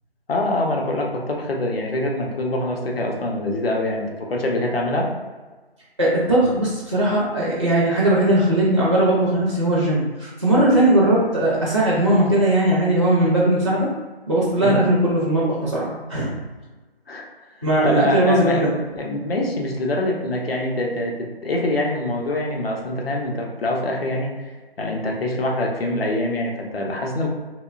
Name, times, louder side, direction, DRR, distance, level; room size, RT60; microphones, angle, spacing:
voice 1, 0.3-5.1 14.6-14.8 17.1-17.3 17.8-24.5 24.8-27.3, left 1 dB, 70° left, 0 dB, 0.7 m, -24 dB
voice 2, 6.0-13.9 14.3-16.3 17.6-18.7, right 1 dB, 30° right, -7 dB, 0.4 m, -19 dB
2.9 x 2.1 x 2.4 m, 1.3 s
figure-of-eight pair, 160°, 31 cm